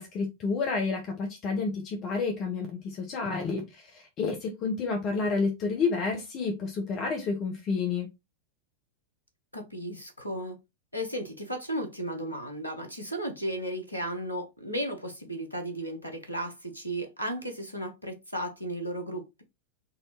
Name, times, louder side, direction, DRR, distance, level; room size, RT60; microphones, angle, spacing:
voice 1, 0.0-8.1, left 4 dB, 35° left, 0.8 m, -30 dB
voice 2, 9.5-10.6 10.9-19.4, right 1 dB, 85° left, 0.9 m, -34 dB
3.9 x 2.6 x 2.9 m
figure-of-eight pair, 90°, 0 cm